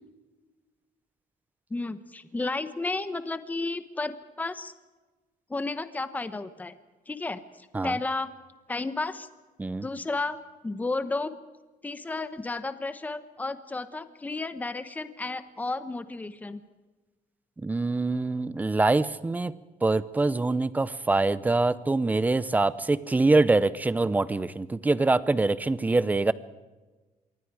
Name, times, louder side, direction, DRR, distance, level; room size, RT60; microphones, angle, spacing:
voice 1, 1.7-4.7 5.5-6.7 7.1-8.3 8.7-9.3 9.8-10.4 10.6-11.3 11.8-16.6, left 3 dB, 10° left, 11 dB, 1.0 m, -32 dB
voice 2, 17.6-19.5 19.8-26.3, right 3 dB, 10° right, 16 dB, 0.6 m, -24 dB
26.0 x 23.0 x 4.9 m, 1.2 s
cardioid pair, 165°, 14 cm